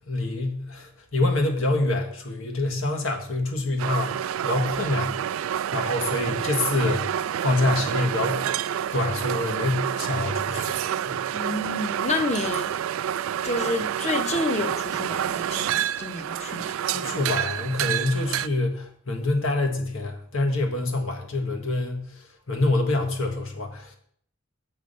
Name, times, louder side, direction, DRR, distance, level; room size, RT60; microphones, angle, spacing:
voice 1, 0.1-5.4 5.7-7.0 7.4-8.5 8.9-10.8 11.1-11.2 16.8-22.1 22.5-24.0, left 2 dB, 80° left, 1.5 m, -26 dB
sound 1, 3.8-18.5, right 10 dB, 80° right, 0.3 m, -28 dB
voice 2, 11.3-12.7 13.4-16.7, left 2 dB, 30° left, 0.9 m, -29 dB
7.6 x 6.0 x 5.5 m
head